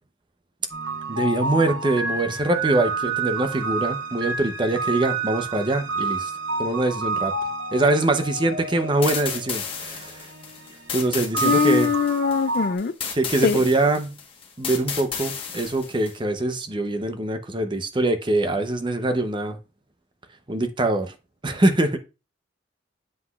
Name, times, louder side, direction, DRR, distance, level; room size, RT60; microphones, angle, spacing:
sound 1, 0.7-12.8, right 3 dB, 85° right, 1.1 m, -29 dB
voice 1, 1.1-6.3 6.6-7.3 7.7-10.3 10.9-11.9 13.1-14.2 14.6-19.6 20.5-21.1 21.4-22.0, right 2 dB, 25° right, 0.6 m, -23 dB
sound 2, 9.0-16.2, left 6 dB, 30° left, 1.1 m, -33 dB
voice 2, 11.4-12.9 13.4-13.6, left 6 dB, 50° left, 0.4 m, -22 dB
7.7 x 5.8 x 2.3 m
head